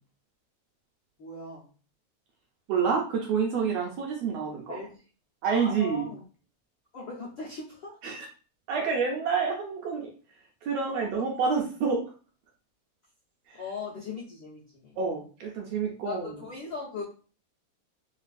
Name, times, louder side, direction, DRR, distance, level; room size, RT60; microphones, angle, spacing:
voice 1, 1.2-1.6 4.7-5.0 5.4-6.2 6.9-8.0 13.6-14.9 16.0-17.0, left 4 dB, 70° left, -7 dB, 1.1 m, -39 dB
voice 2, 2.7-4.8 5.4-6.1 8.0-8.3 8.7-10.1 10.6-12.0 13.5-13.6 15.0-16.3, right 5 dB, 75° right, 0 dB, 1.6 m, -28 dB
4.5 x 2.4 x 2.5 m, 0.38 s
omnidirectional pair, 3.3 m